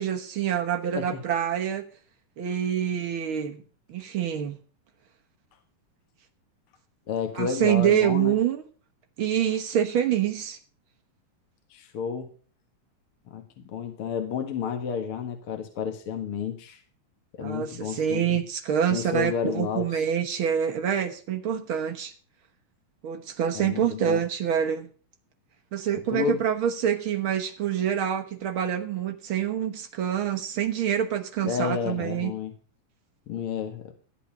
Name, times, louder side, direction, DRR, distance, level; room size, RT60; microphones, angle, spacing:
voice 1, 0.0-1.8 2.4-3.6 3.9-4.6 7.3-8.6 9.2-10.6 17.4-22.1 23.0-24.9 25.7-32.3, right 9 dB, 60° right, 5 dB, 1.4 m, -26 dB
voice 2, 7.1-8.4 11.7-12.3 13.3-16.8 17.4-18.4 18.9-19.9 23.5-24.2 26.1-26.4 31.4-32.5 33.3-33.9, left 7 dB, 50° left, 6 dB, 2.1 m, -31 dB
14.0 x 8.4 x 5.1 m, 0.38 s
omnidirectional pair, 3.8 m